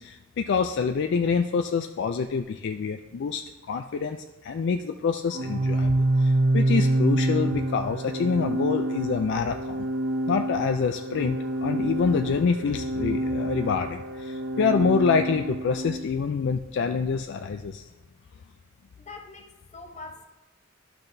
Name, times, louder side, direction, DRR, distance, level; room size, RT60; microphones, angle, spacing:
voice 1, 0.0-3.4 3.7-9.9 10.3-17.9, left 5 dB, 60° left, 6 dB, 0.3 m, -26 dB
Organ, 5.3-16.1, right 1 dB, 55° right, 0.7 m, -27 dB
voice 2, 19.0-20.2, left 3 dB, 35° left, 3 dB, 0.8 m, -43 dB
11.5 x 5.8 x 2.7 m, 1.2 s
head